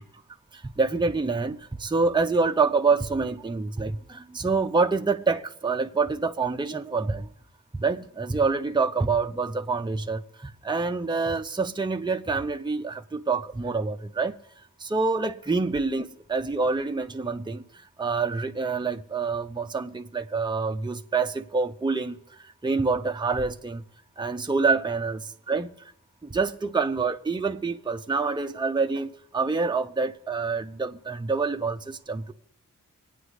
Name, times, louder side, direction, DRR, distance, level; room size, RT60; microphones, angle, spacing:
voice 1, 0.5-7.3 7.8-14.3 14.8-17.6 18.0-22.2 22.6-23.8 24.2-25.8 26.2-32.3, right 4 dB, 15° right, 0.6 m, -26 dB
25.0 x 9.1 x 3.2 m
cardioid pair, 45°, 33 cm